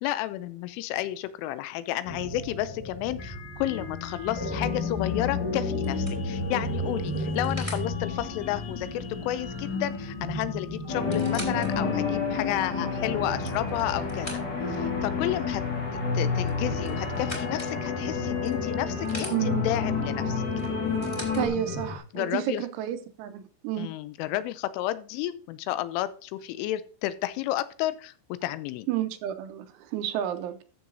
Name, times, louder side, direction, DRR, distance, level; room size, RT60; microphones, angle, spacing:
voice 1, 0.0-14.4 14.7-15.6 15.9-20.4 22.1-22.6 23.8-28.9, left 14 dB, 85° left, 3.0 m, -31 dB
sound 1, 2.1-22.0, left 3 dB, 55° left, 1.9 m, -34 dB
sound 2, 4.9-5.2 5.8-7.9 9.9-10.0 10.3-10.4 10.9-11.7 12.3-12.4 13.1-14.7 16.4-17.7 18.4-19.4 20.6-21.4 22.4-22.5, equal, 15° left, 1.3 m, -42 dB
sound 3, 10.9-21.5, left 4 dB, 35° left, 2.0 m, -30 dB
voice 2, 19.3-19.7 21.4-23.9 28.9-30.6, right 11 dB, 80° right, 3.0 m, -31 dB
14.0 x 7.0 x 2.7 m
omnidirectional pair, 5.8 m